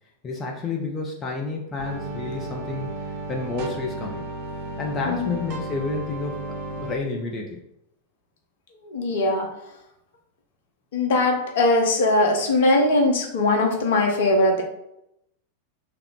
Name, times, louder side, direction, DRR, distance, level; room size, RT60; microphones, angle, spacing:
voice 1, 0.2-4.2 4.8-6.4 6.7-7.6, left 3 dB, 25° left, 0 dB, 0.6 m, -30 dB
sound 1, 1.8-7.0, right 2 dB, 45° right, 0.6 m, -34 dB
voice 2, 8.8-9.5 10.9-14.6, left 2 dB, 55° left, 2 dB, 0.9 m, -20 dB
3.4 x 2.9 x 3.7 m, 0.82 s
figure-of-eight pair, 90°, 0 cm